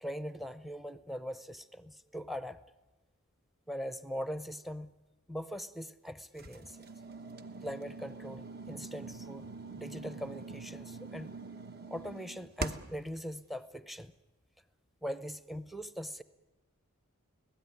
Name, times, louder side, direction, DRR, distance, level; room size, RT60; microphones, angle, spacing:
voice 1, 0.0-2.6 3.7-4.9 5.3-6.8 7.6-9.5 9.8-11.4 11.9-14.1 15.0-16.2, equal, ahead, 13 dB, 0.7 m, -41 dB
sound 1, 6.4-13.1, right 3 dB, 45° right, 1.0 m, -44 dB
25.0 x 17.0 x 9.7 m, 1.2 s
head